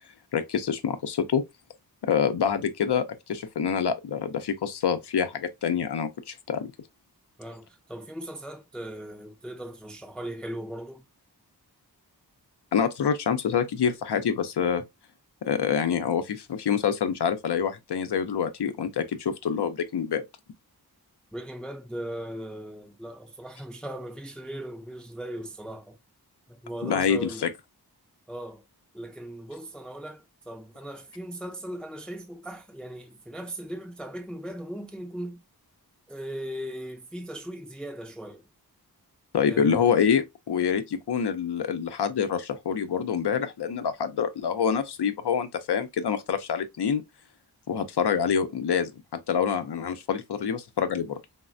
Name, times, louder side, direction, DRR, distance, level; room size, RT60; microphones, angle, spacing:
voice 1, 0.3-1.4 2.0-6.7 12.7-14.8 15.4-20.2 26.8-27.3 39.3-47.0 47.7-48.9 49.3-51.2, left 7 dB, 80° left, 0.5 m, -26 dB
voice 2, 7.4-11.0 21.3-26.0 26.5-27.5 28.3-28.6 28.9-35.4 36.1-38.4 39.5-39.9, right 1 dB, ahead, 0.4 m, -38 dB
3.1 x 2.0 x 2.4 m
wide cardioid pair, 55°, 40 cm